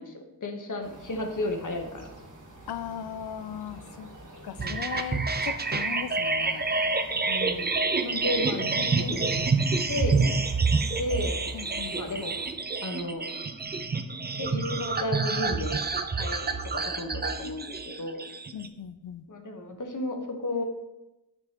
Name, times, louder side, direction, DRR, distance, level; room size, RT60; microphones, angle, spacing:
voice 1, 0.0-2.1 4.6-4.8 7.3-7.7 8.0-9.4 9.9-10.3 11.0-11.4 11.9-12.3 12.8-13.3 14.3-15.8 16.1-18.3 19.3-20.6, left 1 dB, 55° left, 4 dB, 1.2 m, -33 dB
sound 1, 0.8-12.5, right 1 dB, 55° right, 1.5 m, -48 dB
voice 2, 2.7-4.1 4.4-6.7 11.5-12.0 18.5-19.2, left 9 dB, 85° left, 13 dB, 0.5 m, -38 dB
sound 2, 4.6-18.7, right 4 dB, 25° right, 0.5 m, -28 dB
8.7 x 6.1 x 2.9 m, 0.97 s
cardioid pair, 55°, 38 cm